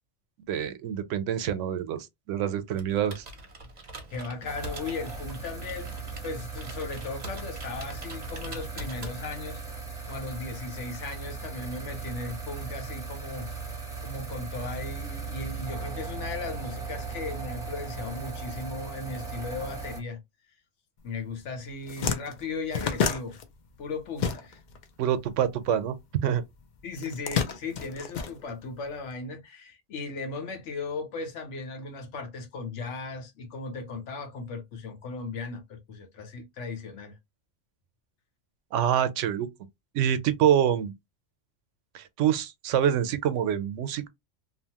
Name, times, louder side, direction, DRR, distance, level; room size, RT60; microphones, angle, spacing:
voice 1, 0.5-3.2 25.0-26.0 26.2-26.4 38.7-39.5 39.9-40.9 41.9-44.1, right 9 dB, 85° right, 0.9 m, -26 dB
Computer keyboard, 2.7-9.6, right 1 dB, 40° right, 0.8 m, -44 dB
voice 2, 4.1-9.6 10.1-13.5 14.0-20.2 21.0-23.4 23.8-24.6 26.8-37.2, left 3 dB, 75° left, 1.1 m, -37 dB
sound 1, 4.4-20.0, right 5 dB, 5° right, 1.0 m, -38 dB
sound 2, 21.3-21.4 21.7-24.8 25.1-26.3 26.9-29.0, left 6 dB, 60° left, 0.5 m, -30 dB
2.8 x 2.1 x 2.8 m
omnidirectional pair, 1.2 m